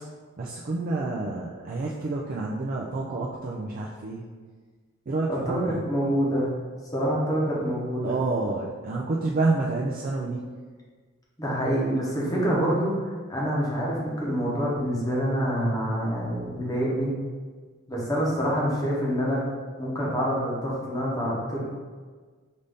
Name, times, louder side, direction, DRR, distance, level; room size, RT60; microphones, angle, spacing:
voice 1, 0.4-4.2 5.1-5.8 8.0-10.5, right 3 dB, 45° right, -3 dB, 0.4 m, -28 dB
voice 2, 5.4-6.5 6.9-8.2 11.4-17.1 17.9-19.4 19.8-21.6, equal, 15° left, -5 dB, 0.9 m, -26 dB
5.3 x 2.6 x 3.4 m, 1.5 s
head